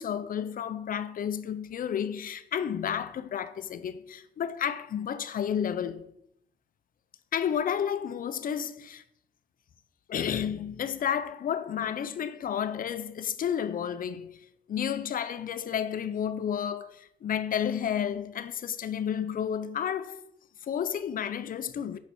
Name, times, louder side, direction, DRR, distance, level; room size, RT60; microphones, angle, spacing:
voice 1, 0.0-6.1 7.3-9.0 10.1-20.2 20.6-22.0, left 8 dB, 45° left, 0.5 m, -31 dB
5.7 x 4.0 x 4.3 m
cardioid pair, 90°, 20 cm